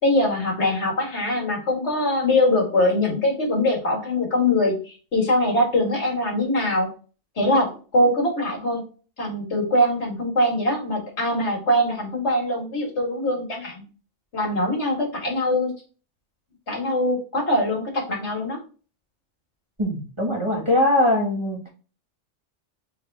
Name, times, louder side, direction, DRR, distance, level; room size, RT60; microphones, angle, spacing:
voice 1, 0.0-6.9 7.4-8.8 9.2-13.8 14.3-15.7 16.7-18.6 20.5-20.6, left 1 dB, 70° left, 0 dB, 2.1 m, -22 dB
voice 2, 19.8-21.6, left 1 dB, 25° right, -2 dB, 1.7 m, -21 dB
4.4 x 3.6 x 3.3 m, 0.35 s
omnidirectional pair, 1.2 m